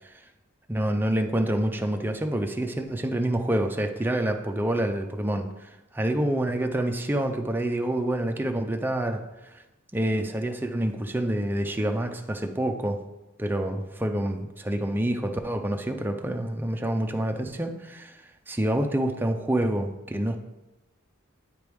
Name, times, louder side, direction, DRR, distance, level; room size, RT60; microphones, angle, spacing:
voice 1, 0.7-9.2 9.5-9.6 9.9-13.0 13.4-18.2 18.5-20.4, right 1 dB, 10° right, 4 dB, 0.4 m, -27 dB
9.0 x 4.6 x 3.4 m, 1.0 s
head